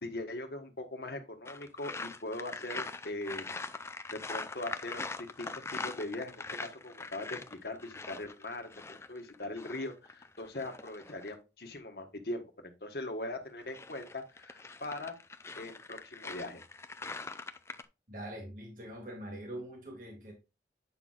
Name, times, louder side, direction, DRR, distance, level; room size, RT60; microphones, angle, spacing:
voice 1, 0.0-3.5 4.1-12.4 12.8-15.2 15.6-16.6, left 2 dB, 60° left, 1.4 m, -41 dB
sound 1, 1.5-11.3 13.5-17.9, left 3 dB, 15° left, 0.4 m, -42 dB
voice 2, 18.1-20.3, right 1 dB, 50° right, 2.0 m, -43 dB
9.0 x 5.9 x 2.4 m
head